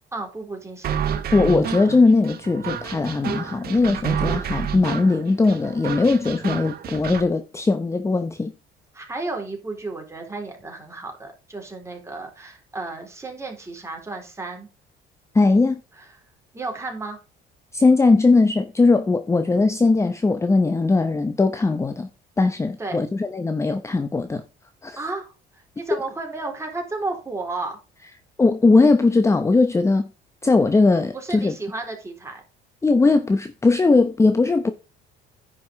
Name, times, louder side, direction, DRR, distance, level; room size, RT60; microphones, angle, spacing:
voice 1, 0.1-1.1 8.9-14.7 16.0-16.1 16.5-17.2 22.8-23.1 25.0-27.8 31.1-32.4, right 3 dB, 15° right, 3.8 m, -33 dB
sound 1, 0.8-7.2, right 8 dB, 55° right, 1.5 m, -29 dB
voice 2, 1.3-8.5 15.3-15.8 17.7-22.1 22.4-24.4 24.8-25.0 28.4-30.1 30.4-31.5 32.8-34.7, left 3 dB, 15° left, 0.8 m, -19 dB
10.5 x 5.3 x 5.3 m
cardioid pair, 110°, 18 cm